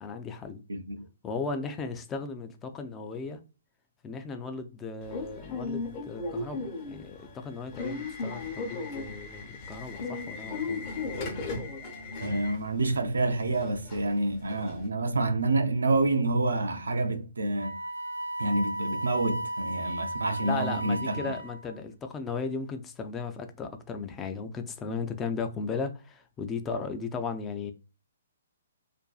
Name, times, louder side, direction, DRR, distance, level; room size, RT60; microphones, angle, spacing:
voice 1, 0.0-0.6 1.2-3.4 4.0-10.9 20.4-27.7, left 4 dB, 15° left, 0.3 m, -36 dB
voice 2, 0.7-1.1 12.2-17.8 18.4-21.3, right 2 dB, 85° right, 0.4 m, -28 dB
Subway metro underground / Alarm, 5.0-14.9, left 3 dB, 40° left, 0.7 m, -37 dB
Wind instrument woodwind instrument, 17.6-21.7, right 1 dB, 80° left, 0.8 m, -35 dB
2.5 x 2.2 x 2.3 m
hypercardioid pair, 135°, 0 cm